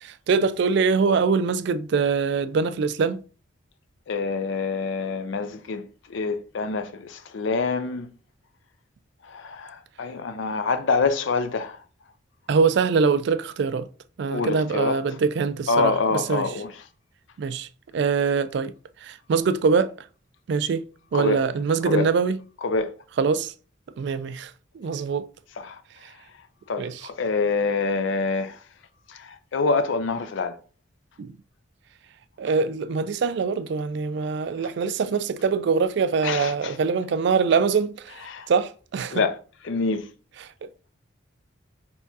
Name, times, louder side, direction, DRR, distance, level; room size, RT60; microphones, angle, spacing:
voice 1, 0.0-3.2 12.5-13.9 14.2-16.5 17.4-17.7 17.9-18.7 19.0-19.9 20.5-20.9 21.1-22.4 23.2-23.5 24.0-24.5 24.8-25.3 26.8-27.0 31.2-31.3 32.4-38.0 38.5-39.2, right 5 dB, 55° right, 0.3 m, -23 dB
voice 2, 4.1-5.8 6.1-8.1 9.3-11.8 14.3-15.0 15.7-16.8 21.1-21.4 21.8-22.1 22.6-22.9 25.6-25.8 26.7-28.6 29.1-30.6 36.2-36.8 38.3-38.5 39.1-39.4 39.6-40.0, left 4 dB, 65° left, 0.5 m, -26 dB
4.5 x 3.4 x 2.7 m
head